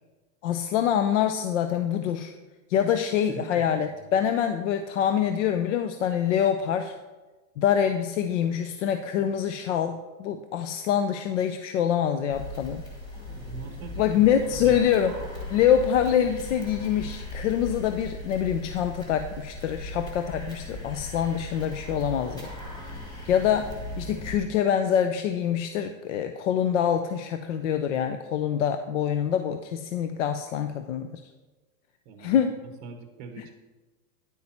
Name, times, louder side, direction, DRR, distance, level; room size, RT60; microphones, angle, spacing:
voice 1, 0.4-2.3 2.7-6.9 7.6-12.8 14.0-15.1 15.5-22.5 23.2-31.2 32.2-32.5, left 9 dB, 55° left, 8 dB, 0.6 m, -25 dB
voice 2, 3.3-4.1 13.4-15.0 32.0-33.5, right 6 dB, 25° right, 5 dB, 0.8 m, -43 dB
sound 1, 12.3-24.4, left 1 dB, 10° left, 2.0 m, -38 dB
10.0 x 8.5 x 4.3 m, 1.2 s
supercardioid pair, 170°, 43 cm